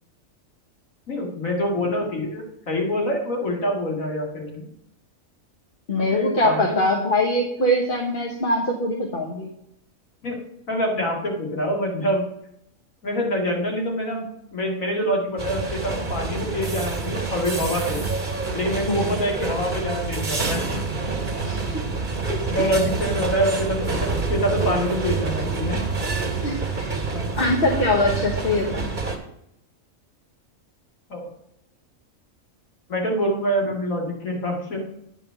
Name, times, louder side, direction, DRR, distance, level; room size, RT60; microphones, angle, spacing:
voice 1, 1.1-4.7 6.0-6.8 10.2-10.4 10.7-12.3 13.0-18.0 18.5-20.6 22.5-25.8 27.1-27.3 31.1-31.2 32.9-34.8, equal, 85° left, 0 dB, 2.7 m, -25 dB
voice 2, 5.9-9.5 18.9-19.1 21.4-21.8 22.3-22.4 26.4-26.9 27.4-28.9, left 1 dB, 45° left, 1 dB, 1.3 m, -23 dB
sound 1, 15.4-29.2, right 4 dB, 40° right, 1.7 m, -27 dB
9.7 x 5.4 x 5.7 m, 0.77 s
omnidirectional pair, 1.4 m